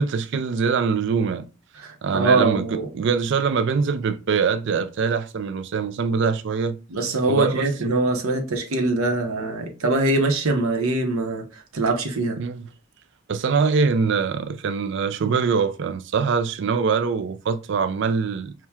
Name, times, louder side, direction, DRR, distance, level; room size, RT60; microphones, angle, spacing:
voice 1, 0.0-1.5 2.0-6.8 7.3-7.9 12.4-12.7 13.3-18.5, right 5 dB, 55° right, 0.4 m, -23 dB
voice 2, 1.8-2.9 6.9-12.4, right 2 dB, 90° right, 0.8 m, -23 dB
5.7 x 2.2 x 2.3 m
head